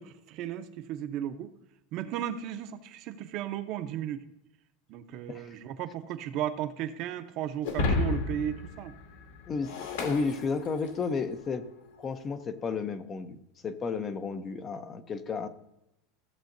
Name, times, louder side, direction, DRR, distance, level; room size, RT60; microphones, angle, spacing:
voice 1, 0.0-1.5 1.9-4.2 4.9-8.9, right 11 dB, 45° right, 10 dB, 0.7 m, -35 dB
Shatter, 7.6-11.1, left 3 dB, 80° left, 2.2 m, -32 dB
voice 2, 9.5-11.7 12.0-15.5, left 5 dB, 20° left, 10 dB, 0.6 m, -33 dB
15.5 x 7.5 x 2.6 m, 0.86 s
supercardioid pair, 160°, 0 cm